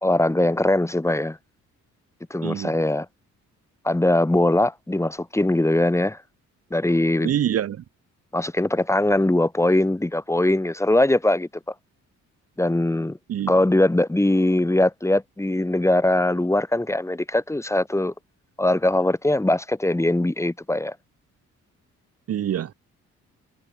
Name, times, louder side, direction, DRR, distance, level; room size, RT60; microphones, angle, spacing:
voice 1, 0.0-1.4 2.3-3.1 3.8-6.2 6.7-7.3 8.3-11.5 12.6-13.2 13.5-18.1 18.6-21.0, left 1 dB, 10° left, 2.2 m, -21 dB
voice 2, 2.4-2.8 7.2-7.8 13.3-13.5 22.3-22.7, right 10 dB, 50° right, 0.9 m, -25 dB
cardioid pair, 90°, 30 cm